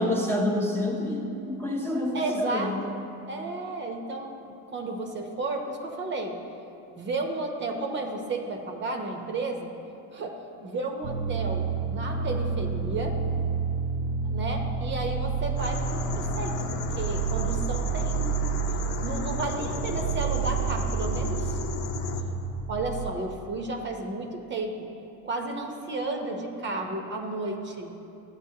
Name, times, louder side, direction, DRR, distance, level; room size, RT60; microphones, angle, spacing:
voice 1, 0.0-2.9, left 1 dB, 5° left, -1 dB, 0.7 m, -28 dB
voice 2, 2.1-2.9 3.3-4.3 4.7-6.4 6.9-9.7 10.1-13.2 14.2-18.4 19.0-21.6 22.7-24.9 25.2-27.9, right 2 dB, 35° right, 3 dB, 0.8 m, -33 dB
sound 1, 11.0-23.1, right 6 dB, 70° right, 0.8 m, -30 dB
sound 2, 15.6-22.2, left 3 dB, 75° left, 0.9 m, -33 dB
13.5 x 8.3 x 2.8 m, 2.8 s
cardioid pair, 125°, 34 cm